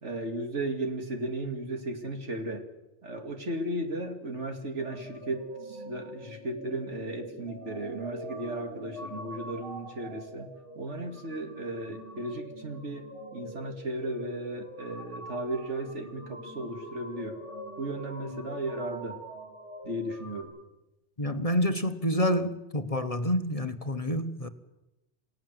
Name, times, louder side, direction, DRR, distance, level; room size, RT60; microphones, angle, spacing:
voice 1, 0.0-2.7 3.0-10.5 10.7-17.4 17.8-19.2 19.8-20.5, right 1 dB, 75° right, 2.8 m, -35 dB
sound 1, 4.8-20.4, equal, 25° right, 8.1 m, -44 dB
voice 2, 21.2-24.5, equal, 30° left, 1.1 m, -28 dB
28.5 x 17.0 x 7.7 m
omnidirectional pair, 1.2 m